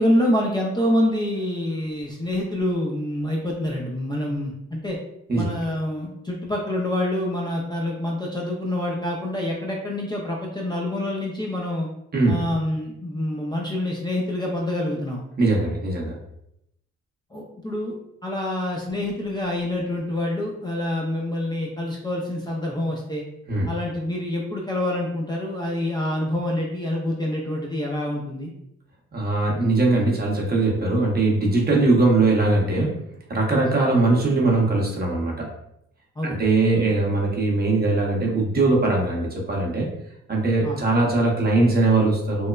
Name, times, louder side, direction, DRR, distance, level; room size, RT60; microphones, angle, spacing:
voice 1, 0.0-5.0 5.3-11.9 12.3-15.2 17.3-17.9 18.2-23.2 23.7-28.5 36.2-36.5 40.6-40.8, left 1 dB, 15° left, -2 dB, 0.4 m, -26 dB
voice 2, 15.4-16.1 23.5-23.7 29.1-33.0 33.3-35.5 36.2-39.9 40.3-42.5, right 2 dB, 30° right, -1 dB, 0.7 m, -21 dB
3.0 x 2.0 x 2.2 m, 0.79 s
cardioid pair, 90°, 30 cm